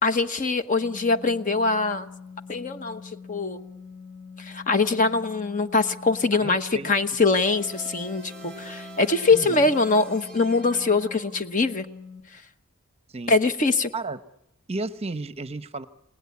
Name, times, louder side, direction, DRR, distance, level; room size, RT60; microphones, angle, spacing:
voice 1, 0.0-2.1 2.5-3.0 3.3-3.6 4.4-11.9 13.3-13.9, left 3 dB, 35° left, 9 dB, 1.0 m, -23 dB
sound 1, 0.8-12.2, left 5 dB, 55° left, 7.9 m, -44 dB
voice 2, 6.4-6.9 9.3-9.6 13.1-13.3 13.9-14.2 14.7-15.9, right 3 dB, 30° right, 11 dB, 0.9 m, -33 dB
sound 2, 7.5-11.8, right 2 dB, 5° left, 3.1 m, -45 dB
29.5 x 18.5 x 8.4 m, 0.86 s
head